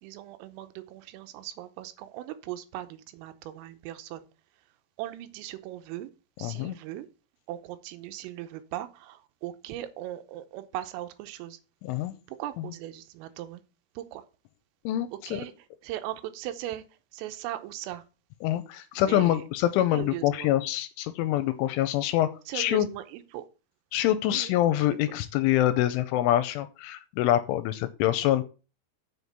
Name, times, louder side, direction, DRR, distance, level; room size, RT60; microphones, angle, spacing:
voice 1, 0.0-4.3 5.0-6.1 6.4-7.1 7.5-11.6 12.3-13.6 14.0-14.2 15.1-15.5 15.8-16.8 17.1-18.0 19.0-19.4 19.9-20.5 22.5-23.5 24.3-24.5, right 13 dB, 85° right, 11 dB, 3.4 m, -38 dB
voice 2, 6.4-6.8 11.8-12.1 14.9-15.4 18.4-22.9 23.9-28.4, left 13 dB, 85° left, 12 dB, 2.9 m, -25 dB
7.3 x 6.3 x 6.8 m, 0.33 s
omnidirectional pair, 5.9 m